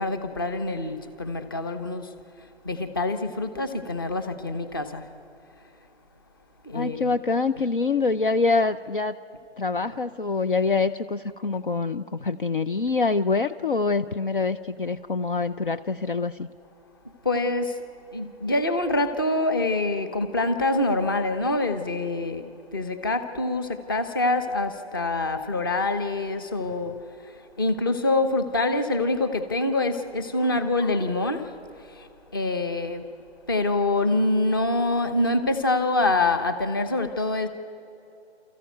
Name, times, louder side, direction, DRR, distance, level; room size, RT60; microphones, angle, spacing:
voice 1, 0.0-2.1 2.6-5.1 6.6-7.1 17.2-17.8 18.1-33.1 33.5-37.5, left 2 dB, 20° left, 9 dB, 0.8 m, -25 dB
voice 2, 6.7-9.2 9.6-16.5, left 4 dB, 50° left, 10 dB, 0.6 m, -25 dB
28.5 x 14.5 x 9.3 m, 2.8 s
figure-of-eight pair, 165°, 34 cm